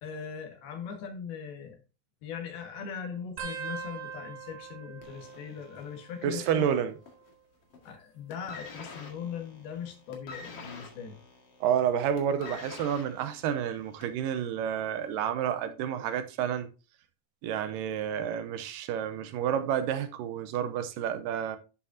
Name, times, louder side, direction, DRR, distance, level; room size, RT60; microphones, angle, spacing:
voice 1, 0.0-1.8 2.2-6.7 7.9-11.2, left 7 dB, 85° left, 3.6 m, -40 dB
sound 1, 3.4-6.6 6.8-7.4 8.4-9.9 10.5-10.9 12.1-12.4 13.9-14.0, right 6 dB, 60° right, 2.6 m, -44 dB
sound 2, 5.0-7.3 7.6-8.0 8.3-14.3 15.1-15.2, left 4 dB, 45° left, 2.4 m, -47 dB
voice 2, 6.2-6.9 11.6-16.7 17.4-21.6, right 9 dB, 80° right, 2.2 m, -30 dB
10.0 x 7.5 x 2.7 m
omnidirectional pair, 4.2 m